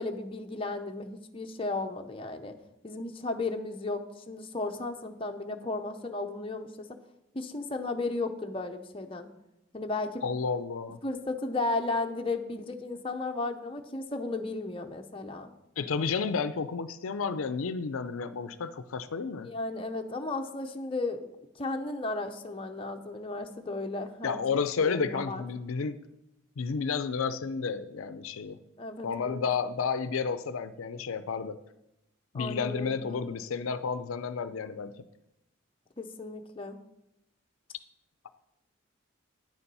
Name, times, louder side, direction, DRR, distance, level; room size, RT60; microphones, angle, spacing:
voice 1, 0.0-2.5 2.8-6.9 7.3-9.3 9.7-10.3 11.0-15.5 19.4-24.4 24.8-25.4 28.8-29.4 32.3-33.2 36.0-36.8, left 2 dB, 25° left, 4 dB, 0.7 m, -34 dB
voice 2, 10.2-11.0 15.8-19.5 24.2-26.0 26.6-28.6 29.0-31.6 32.3-34.9 38.2-38.3, left 5 dB, 80° left, 12 dB, 0.5 m, -31 dB
9.5 x 7.0 x 5.4 m, 0.88 s
head